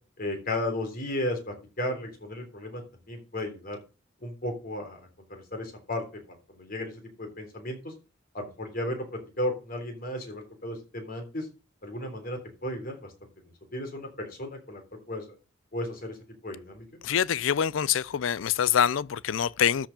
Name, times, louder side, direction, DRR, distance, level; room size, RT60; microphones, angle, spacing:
voice 1, 0.2-3.8 4.2-6.2 6.5-7.9 8.3-11.5 11.8-13.1 13.4-14.8 15.1-15.3 15.7-16.2 16.4-16.9, left 1 dB, 50° left, 3.4 m, -34 dB
voice 2, 17.0-19.9, left 9 dB, 85° left, 0.4 m, -25 dB
13.0 x 4.8 x 5.2 m
head